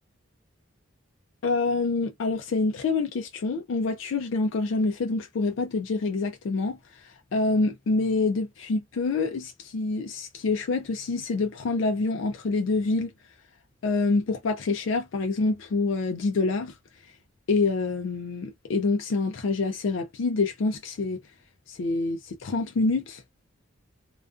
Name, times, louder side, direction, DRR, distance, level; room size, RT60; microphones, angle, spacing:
voice 1, 1.4-6.8 7.0-13.1 13.8-16.7 17.5-21.2 21.7-23.2, left 3 dB, 70° left, 0.4 m, -26 dB
2.3 x 2.3 x 2.4 m
head